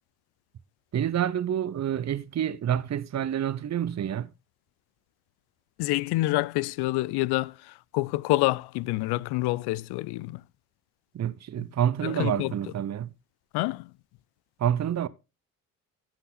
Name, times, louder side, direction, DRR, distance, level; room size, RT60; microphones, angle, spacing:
voice 1, 0.9-4.3 11.1-13.1 14.6-15.1, right 10 dB, 40° right, 0.9 m, -28 dB
voice 2, 5.8-7.5 7.9-10.4 12.0-12.5 13.5-13.9, left 19 dB, 60° left, 0.6 m, -27 dB
15.5 x 5.8 x 4.0 m
hypercardioid pair, 45°, 43 cm